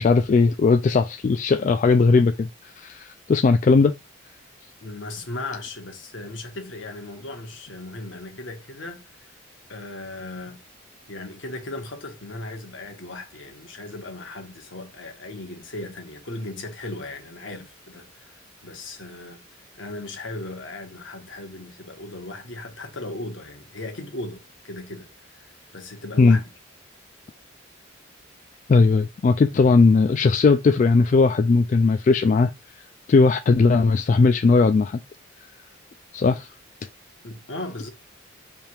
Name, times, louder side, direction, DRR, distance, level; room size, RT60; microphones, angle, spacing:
voice 1, 0.0-2.5 2.8-3.9 26.2-26.4 28.7-32.5 33.1-35.0 36.1-36.5, left 4 dB, 40° left, 0.3 m, -18 dB
voice 2, 4.8-9.2 9.7-10.6 11.1-19.4 19.7-25.1 25.4-26.5 37.2-37.9, left 2 dB, 70° left, 1.1 m, -37 dB
3.5 x 2.8 x 4.4 m
head